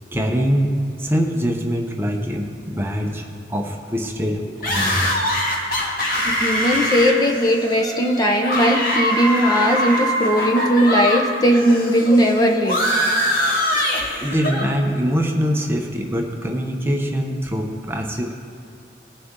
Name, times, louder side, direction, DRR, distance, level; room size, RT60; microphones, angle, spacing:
voice 1, 0.1-0.7 1.0-5.1 13.5-13.9 14.2-18.3, equal, 15° right, 1 dB, 0.8 m, -23 dB
sound 1, 4.6-11.2 11.5-14.7, equal, 55° left, 1.7 m, -23 dB
voice 2, 6.3-12.8 13.7-13.9, equal, 20° left, 2 dB, 0.7 m, -18 dB
19.0 x 6.7 x 3.8 m, 2.4 s
head